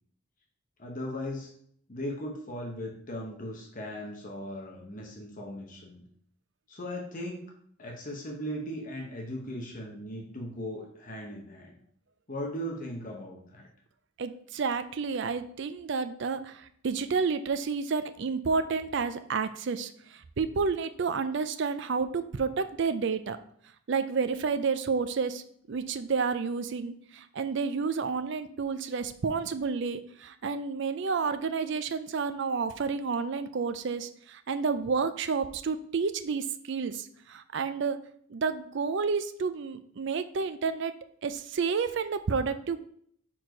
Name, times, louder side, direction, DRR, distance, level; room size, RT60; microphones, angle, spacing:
voice 1, 0.8-1.5 1.9-6.0 6.7-7.5 7.8-11.7 12.3-13.7, equal, 40° left, 0 dB, 1.0 m, -38 dB
voice 2, 14.2-23.4 23.9-25.4 25.7-38.0 38.3-40.9 41.2-42.9, right 5 dB, 55° right, 11 dB, 0.4 m, -30 dB
4.6 x 4.4 x 5.1 m, 0.64 s
head